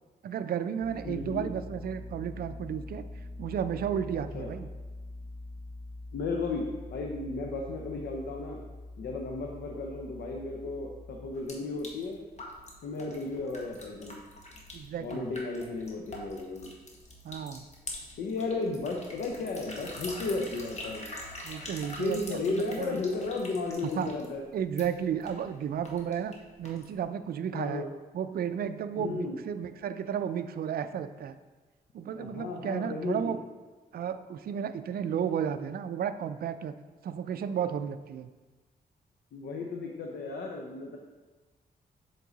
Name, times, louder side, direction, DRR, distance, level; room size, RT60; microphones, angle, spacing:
voice 1, 0.2-3.0 3.4-4.7 14.7-15.3 17.2-17.6 21.4-23.0 24.0-24.1 24.5-27.9 28.1-31.4 31.9-33.4 33.9-36.7 37.0-38.3, right 8 dB, 65° right, 10 dB, 0.4 m, -33 dB
sound 1, 0.8-11.3, left 2 dB, 25° left, 1.4 m, -44 dB
voice 2, 1.0-1.5 4.3-4.5 6.1-8.6 9.0-12.2 12.8-14.2 15.0-16.7 18.2-21.1 22.0-24.4 27.5-27.9 29.0-29.4 32.1-33.4 39.3-41.0, left 3 dB, 80° left, 1 dB, 0.7 m, -34 dB
sound 2, 11.3-27.0, left 1 dB, 40° left, 1.5 m, -45 dB
7.3 x 4.6 x 4.0 m, 1.3 s
cardioid pair, 70°, 17 cm